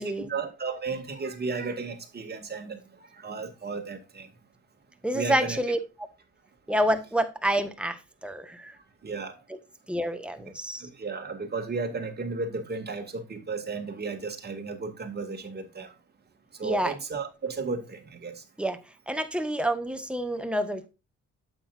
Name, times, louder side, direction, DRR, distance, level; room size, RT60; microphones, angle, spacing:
voice 1, 0.0-2.8 3.1-4.3 5.1-5.6 9.0-9.3 10.8-15.9 16.6-18.4, right 4 dB, 35° right, 2.4 m, -34 dB
voice 2, 5.0-5.8 6.7-8.8 9.9-10.9 16.6-16.9 18.6-18.8 19.1-20.9, right 1 dB, 5° right, 1.4 m, -28 dB
8.9 x 8.0 x 2.6 m
cardioid pair, 90°, 30 cm